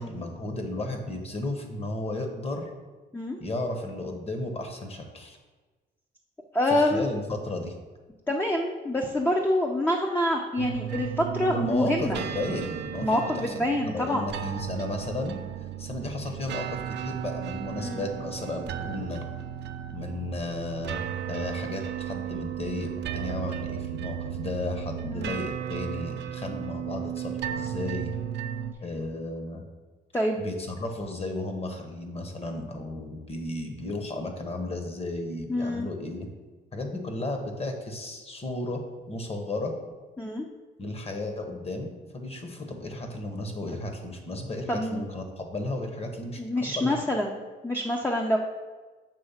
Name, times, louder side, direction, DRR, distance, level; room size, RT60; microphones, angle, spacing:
voice 1, 0.0-2.7 3.4-5.4 6.7-7.7 11.5-15.4 15.8-19.2 19.9-28.1 28.8-29.6 30.4-36.3 36.7-39.7 40.8-47.0, left 2 dB, 30° left, 4 dB, 1.1 m, -34 dB
voice 2, 6.5-7.1 8.3-12.2 13.0-14.2 17.8-18.1 25.0-25.3 30.1-30.4 35.5-35.9 40.2-40.5 44.7-45.0 46.4-47.4 47.6-48.4, left 1 dB, 10° left, 1 dB, 0.6 m, -26 dB
sound 1, 10.6-28.7, right 10 dB, 60° right, 0.5 m, -35 dB
6.8 x 3.2 x 5.7 m, 1.3 s
cardioid pair, 90°, 20 cm